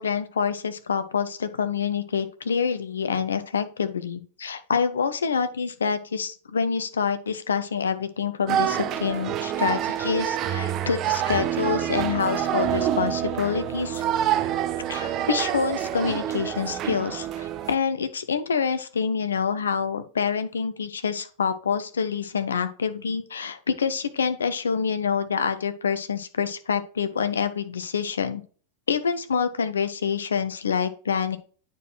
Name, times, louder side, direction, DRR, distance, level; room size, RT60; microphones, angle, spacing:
voice 1, 0.0-14.0 14.9-28.4 28.9-31.4, left 6 dB, 70° left, 11 dB, 0.7 m, -27 dB
sound 1, 8.5-17.7, right 11 dB, 35° right, 0.5 m, -27 dB
9.1 x 4.5 x 3.1 m, 0.40 s
figure-of-eight pair, 90°, 0 cm